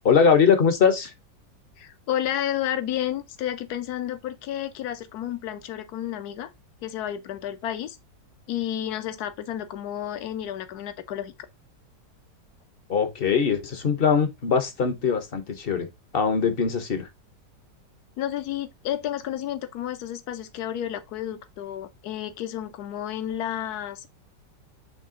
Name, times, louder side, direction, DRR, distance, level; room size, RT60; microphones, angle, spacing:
voice 1, 0.0-1.1 12.9-15.9 16.1-17.1, left 6 dB, 40° left, 0.9 m, -21 dB
voice 2, 1.8-6.5 6.8-8.0 8.5-11.3 18.2-24.1, left 11 dB, 65° left, 1.3 m, -31 dB
7.6 x 3.4 x 3.7 m
omnidirectional pair, 1.9 m